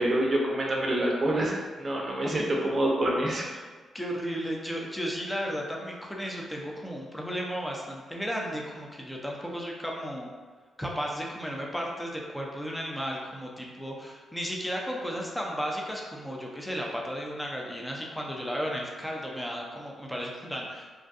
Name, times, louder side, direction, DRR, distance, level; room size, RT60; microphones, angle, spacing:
voice 1, 0.0-3.5, right 1 dB, 40° right, -2 dB, 0.6 m, -26 dB
voice 2, 2.2-2.8 3.9-10.3 10.8-20.9, equal, 5° left, -1 dB, 0.6 m, -34 dB
2.6 x 2.2 x 2.5 m, 1.4 s
supercardioid pair, 60°, 0 cm